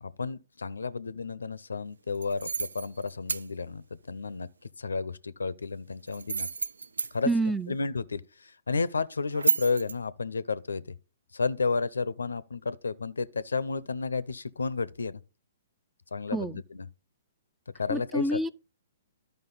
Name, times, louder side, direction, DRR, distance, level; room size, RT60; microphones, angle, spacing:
voice 1, 0.0-6.5 7.1-7.3 7.7-10.9 11.3-15.2 16.1-16.9 17.8-18.4, left 4 dB, 90° left, 0.4 m, -32 dB
sound 1, 2.1-3.5 6.1-7.1 9.3-9.9, right 4 dB, 90° right, 0.3 m, -30 dB
voice 2, 7.3-7.7 16.3-16.6 17.9-18.5, right 2 dB, 5° right, 0.3 m, -28 dB
11.5 x 5.2 x 3.9 m
hypercardioid pair, 130°, 0 cm